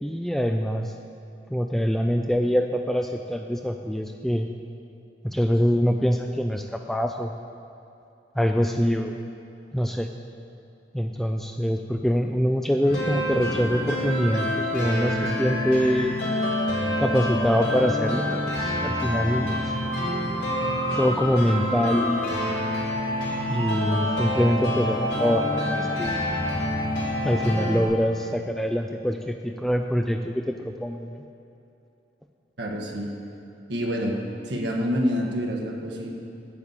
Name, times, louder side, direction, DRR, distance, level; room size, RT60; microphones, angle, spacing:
voice 1, 0.0-0.9 1.5-4.5 5.2-7.4 8.4-9.1 9.7-10.1 10.9-16.2 17.0-19.7 20.9-22.4 23.5-26.2 27.2-31.2, equal, ahead, 4 dB, 0.3 m, -24 dB
sound 1, 12.9-27.8, left 1 dB, 65° left, 3.0 m, -27 dB
voice 2, 32.6-33.1 33.7-34.2 34.4-36.1, equal, 75° right, 0 dB, 1.5 m, -27 dB
8.4 x 8.2 x 7.3 m, 2.7 s
head